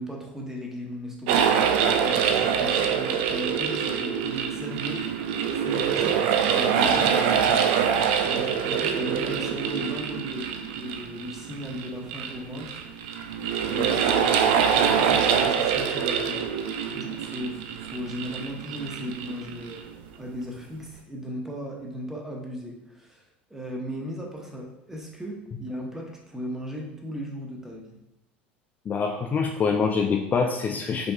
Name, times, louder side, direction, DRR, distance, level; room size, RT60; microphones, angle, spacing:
voice 1, 0.0-5.2 5.5-12.8 13.7-17.6 17.9-19.8 20.2-28.0, equal, 10° right, -1 dB, 1.0 m, -37 dB
sound 1, 1.3-19.9, right 7 dB, 65° right, 0.4 m, -25 dB
voice 2, 28.9-31.1, left 5 dB, 30° left, 3 dB, 0.4 m, -25 dB
5.2 x 3.5 x 2.4 m, 0.89 s
hypercardioid pair, 80°, 6 cm